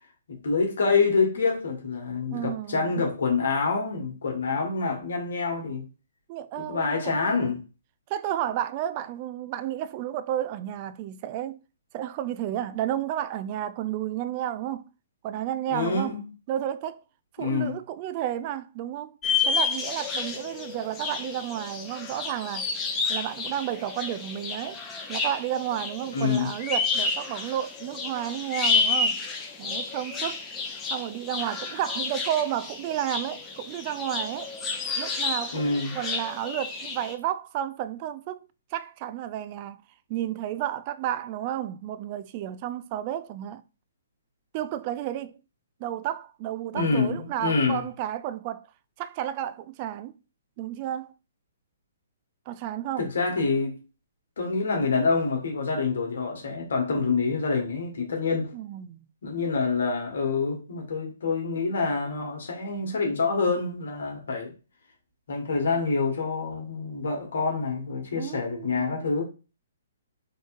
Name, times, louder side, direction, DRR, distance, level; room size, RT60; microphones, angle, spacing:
voice 1, 0.3-5.9 6.6-7.6 15.7-16.2 17.4-17.8 26.1-26.5 35.5-36.0 46.7-47.8 53.0-53.8 54.4-58.5 59.2-64.5 65.3-69.2, left 4 dB, 65° left, 1.4 m, -26 dB
voice 2, 2.3-3.0 6.3-7.0 7.2-7.5 8.1-11.6 11.9-14.9 15.2-16.2 16.5-17.0 17.4-19.2 19.4-22.7 23.1-24.8 25.1-29.2 29.6-30.4 30.9-34.5 35.0-38.4 38.7-39.8 40.1-43.6 44.5-45.4 45.8-48.7 49.0-50.2 50.6-51.1 52.5-53.1 58.5-59.1 68.1-69.0, right 11 dB, 35° right, 0.3 m, -32 dB
sound 1, 19.2-37.1, left 4 dB, 20° left, 0.8 m, -30 dB
4.1 x 3.1 x 2.4 m
figure-of-eight pair, 125°, 0 cm